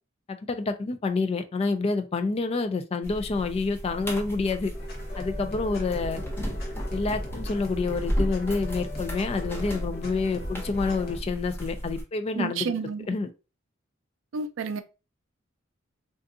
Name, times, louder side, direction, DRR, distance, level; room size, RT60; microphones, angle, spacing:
voice 1, 0.3-4.7 5.2-6.2 6.9-12.8 13.1-13.3, left 3 dB, 30° left, 0.3 m, -28 dB
sound 1, 3.0-12.0, equal, 10° left, 0.8 m, -34 dB
sound 2, 4.7-11.2, equal, 50° left, 0.9 m, -39 dB
voice 2, 12.4-13.1 14.3-14.8, right 5 dB, 70° right, 0.4 m, -30 dB
3.6 x 2.5 x 2.4 m
head